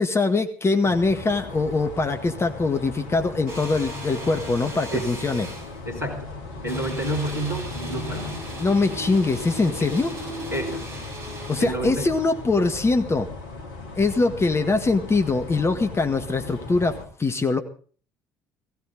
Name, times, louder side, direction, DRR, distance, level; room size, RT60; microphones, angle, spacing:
voice 1, 0.0-5.5 8.6-10.1 11.5-13.3 14.0-17.6, left 3 dB, 25° left, 7 dB, 1.8 m, -23 dB
sound 1, 0.8-17.1, left 3 dB, 70° left, 2.7 m, -37 dB
sound 2, 3.5-5.8 6.7-11.7, equal, 65° right, 7.3 m, -37 dB
voice 2, 5.9-6.4 6.6-8.4 10.5-11.0 11.6-12.1, right 1 dB, 85° right, -2 dB, 3.1 m, -30 dB
18.5 x 16.0 x 3.9 m, 0.42 s
figure-of-eight pair, 55°, 11 cm